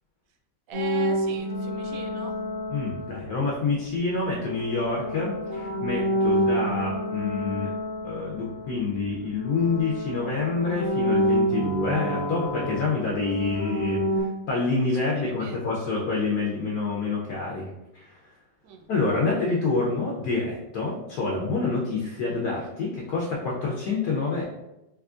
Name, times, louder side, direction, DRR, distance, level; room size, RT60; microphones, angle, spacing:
sound 1, 0.7-3.6 4.3-9.1 9.4-14.2, equal, 25° right, 1.0 m, -28 dB
voice 1, 0.7-2.3 14.9-15.7 18.6-18.9, right 3 dB, 85° right, 2 dB, 1.3 m, -39 dB
voice 2, 2.7-7.7 8.0-14.0 14.5-17.7 17.9-18.1 18.9-24.4, left 3 dB, 65° left, -3 dB, 1.0 m, -27 dB
3.5 x 3.0 x 2.4 m, 0.94 s
omnidirectional pair, 2.1 m